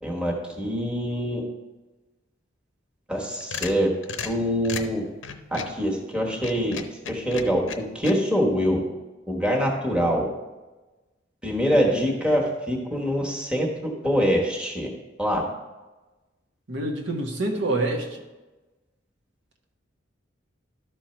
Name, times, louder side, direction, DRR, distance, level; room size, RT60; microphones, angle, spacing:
voice 1, 0.0-1.4 3.1-3.9 4.2-5.0 5.5-6.8 7.1-7.6 7.9-8.8 9.3-10.3 11.4-14.9 15.2-15.5, equal, 5° right, -1 dB, 1.3 m, -24 dB
sound 1, 3.1-5.8 6.3-8.1, left 5 dB, 90° left, 0.7 m, -35 dB
voice 2, 16.7-18.2, right 2 dB, 75° right, 0 dB, 1.2 m, -26 dB
12.0 x 4.5 x 4.4 m, 1.1 s
head